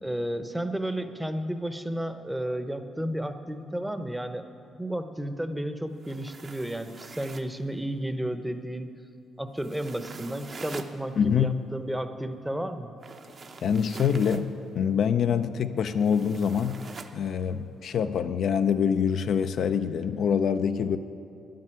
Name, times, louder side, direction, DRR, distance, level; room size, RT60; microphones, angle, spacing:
voice 1, 0.0-4.4 4.8-8.9 9.4-12.9, right 1 dB, 5° right, 9 dB, 0.8 m, -32 dB
sound 1, 5.9-7.6 9.6-11.0 13.0-14.5 16.0-17.2, right 4 dB, 45° right, 0.8 m, -44 dB
voice 2, 11.2-11.5 13.6-16.8 17.1-21.0, left 7 dB, 65° left, 9 dB, 0.5 m, -25 dB
10.5 x 7.6 x 9.8 m, 2.6 s
cardioid pair, 90°, 0 cm